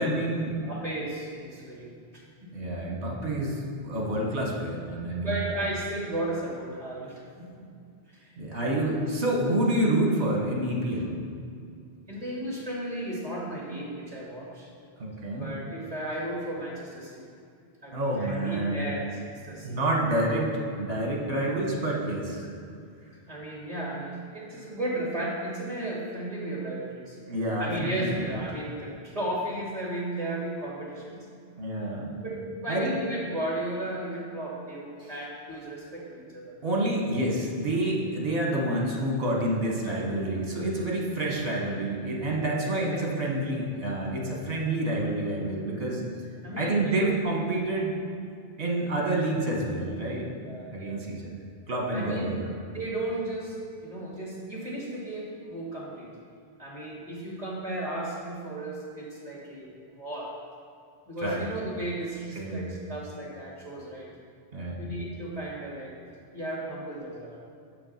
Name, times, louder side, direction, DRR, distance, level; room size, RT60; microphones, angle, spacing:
voice 1, 0.0-0.6 2.5-5.4 8.4-11.1 15.0-15.5 17.9-18.9 19.5-22.5 27.3-28.3 31.6-32.2 32.7-33.0 35.0-35.1 36.6-46.0 46.6-48.0 48.6-50.3 50.7-51.3 51.7-52.5 61.2-61.5 62.4-62.7 64.5-64.8, right 1 dB, 65° right, -1 dB, 1.7 m, -28 dB
voice 2, 0.6-2.5 5.2-7.5 8.1-8.9 12.1-14.7 15.4-17.2 17.8-19.7 23.3-27.2 27.6-31.3 32.2-36.5 42.6-43.0 44.2-44.4 46.4-47.1 50.5-51.0 51.9-52.4 52.7-56.1 56.6-60.3 61.1-64.1 64.8-65.9 66.2-67.4, right 1 dB, 35° right, -5 dB, 2.4 m, -35 dB
6.9 x 6.8 x 5.7 m, 2.3 s
omnidirectional pair, 1.1 m